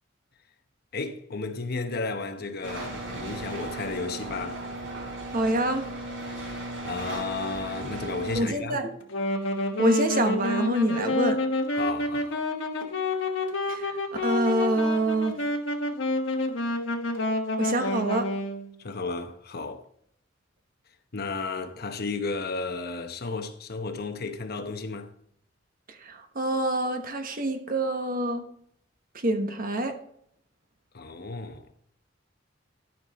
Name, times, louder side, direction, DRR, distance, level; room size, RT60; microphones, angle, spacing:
voice 1, 0.9-4.6 6.8-8.8 11.7-12.4 18.8-19.8 21.1-25.1 30.9-31.6, left 3 dB, 55° left, 1.0 m, -33 dB
sound 1, 2.6-8.4, right 2 dB, 85° right, 3.9 m, -36 dB
voice 2, 5.3-5.9 8.3-8.9 9.8-11.4 13.7-13.9 14.2-15.4 17.6-18.3 26.0-28.4 29.1-30.0, right 1 dB, 50° right, 1.2 m, -26 dB
Wind instrument woodwind instrument, 9.0-18.7, left 2 dB, 75° left, 1.4 m, -28 dB
12.5 x 5.7 x 4.2 m
head